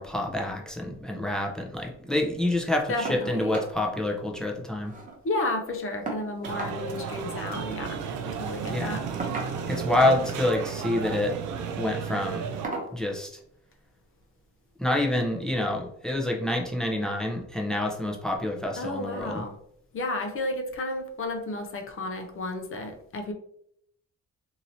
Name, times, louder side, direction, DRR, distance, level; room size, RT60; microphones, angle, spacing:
voice 1, 0.0-4.9 8.6-9.0 9.7-11.3 11.8-12.5 12.9-13.3 14.8-19.4, left 1 dB, ahead, 1 dB, 0.6 m, -27 dB
voice 2, 2.9-3.6 5.2-8.0 8.3-9.1 9.9-10.1 18.8-19.5 19.9-23.3, left 2 dB, 45° left, 4 dB, 0.6 m, -32 dB
sound 1, 3.0-3.3 3.5-3.8 4.1-4.2 4.5-5.2 6.1-6.8 8.0-8.2 9.2-9.9 10.9-11.2 11.7-11.9 12.6-13.0 14.2-14.3 14.8-14.9, right 3 dB, 25° right, 0.8 m, -36 dB
sound 2, 6.4-12.7, right 6 dB, 85° right, 0.5 m, -33 dB
2.9 x 2.7 x 2.7 m, 0.70 s
cardioid pair, 90°, 30 cm